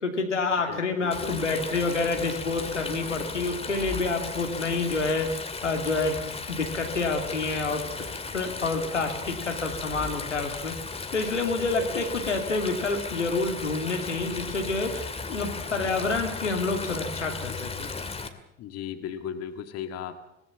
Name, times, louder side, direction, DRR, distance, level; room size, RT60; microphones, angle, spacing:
voice 1, 0.0-7.8 8.3-10.7 11.1-17.9, left 3 dB, 80° left, 4 dB, 2.8 m, -28 dB
voice 2, 0.7-1.4 11.9-12.0 18.6-20.2, left 9 dB, 45° left, 7 dB, 2.1 m, -36 dB
Stream, 1.1-18.3, left 4 dB, 15° left, 2.3 m, -36 dB
27.0 x 18.5 x 7.4 m, 0.82 s
figure-of-eight pair, 65°, 35 cm